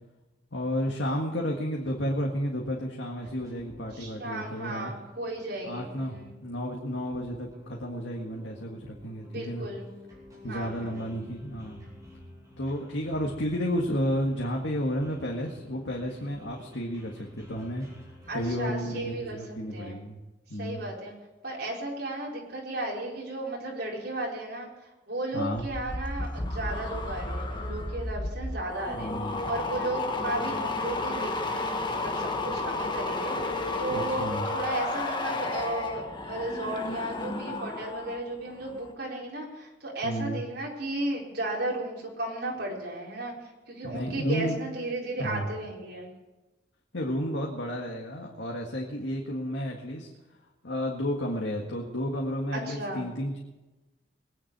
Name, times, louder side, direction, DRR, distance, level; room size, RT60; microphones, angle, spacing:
voice 1, 0.5-4.9 5.7-9.7 10.4-11.9 12.6-17.9 18.3-20.2 20.5-20.8 25.3-25.6 28.9-29.5 33.9-34.5 40.0-40.4 43.8-44.6 45.2-45.5 46.9-50.1 50.6-53.4, equal, 85° left, -1 dB, 1.8 m, -32 dB
sound 1, 3.1-18.5, left 1 dB, 20° right, 5.6 m, -51 dB
voice 2, 3.9-6.4 9.2-9.9 10.4-11.0 16.7-16.8 18.3-20.0 20.5-21.1 21.4-46.1 52.5-53.1, right 1 dB, 60° right, -3 dB, 4.5 m, -35 dB
sound 2, 25.5-38.2 38.5-38.9, left 2 dB, 25° left, 1.4 m, -32 dB
21.5 x 9.8 x 4.8 m, 1.1 s
head